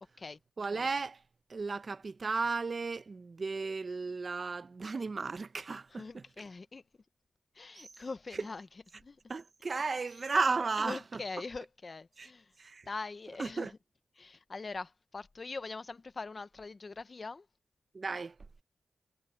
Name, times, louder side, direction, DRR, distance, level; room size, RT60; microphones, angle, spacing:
voice 1, 0.6-1.2 1.5-6.2 7.7-7.9 8.3-8.4 9.3-11.2 12.2-12.3 12.6-12.9 13.4-13.7 17.9-18.4, right 4 dB, 45° right, 0.8 m, -34 dB
voice 2, 5.9-6.8 7.5-8.7 8.9-9.2 10.8-12.5 12.9-13.7 14.2-17.5, left 3 dB, 40° left, 0.8 m, -42 dB
wide cardioid pair, 95°, 0 cm